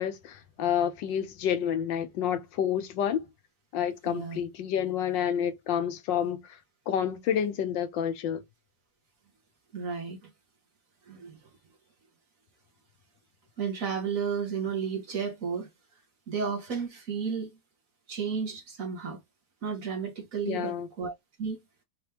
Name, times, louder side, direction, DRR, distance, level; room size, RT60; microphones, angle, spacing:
voice 1, 0.0-3.2 3.7-6.6 6.9-8.4 20.4-20.9, left 9 dB, 85° left, 1.5 m, -29 dB
voice 2, 4.0-4.4 9.7-10.3 11.1-11.4 13.6-15.7 16.3-17.5 18.1-19.2 19.6-21.1 21.4-21.6, right 6 dB, 50° right, 1.8 m, -32 dB
4.5 x 3.0 x 3.3 m
omnidirectional pair, 1.9 m